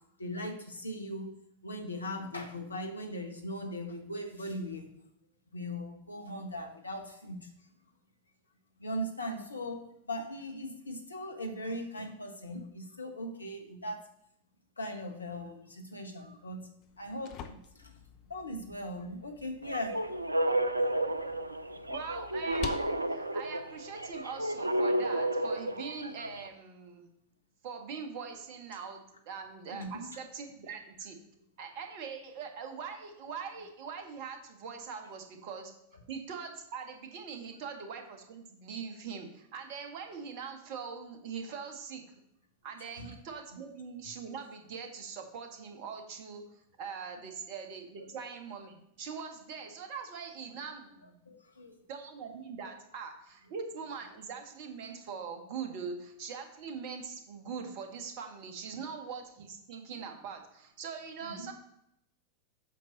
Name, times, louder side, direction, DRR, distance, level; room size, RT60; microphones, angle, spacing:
voice 1, 0.2-1.3 1.6-4.9 5.5-7.5 8.8-14.1 14.8-16.7 17.0-17.9 18.3-20.0 21.9-22.0 29.7-30.1 37.6-37.7 43.0-43.1 48.0-48.1 51.2-51.7 61.2-61.5, equal, 80° left, 4 dB, 1.3 m, -39 dB
sound 1, 16.8-24.8, left 8 dB, 40° left, 0.7 m, -48 dB
sound 2, 19.6-26.5, right 1 dB, 85° right, 0.4 m, -32 dB
voice 2, 21.9-27.1 27.6-31.2 31.6-35.7 36.1-42.0 42.6-51.2 51.9-61.5, right 6 dB, 45° right, 5 dB, 1.5 m, -42 dB
8.3 x 6.5 x 4.0 m, 0.76 s
figure-of-eight pair, 90°, 0 cm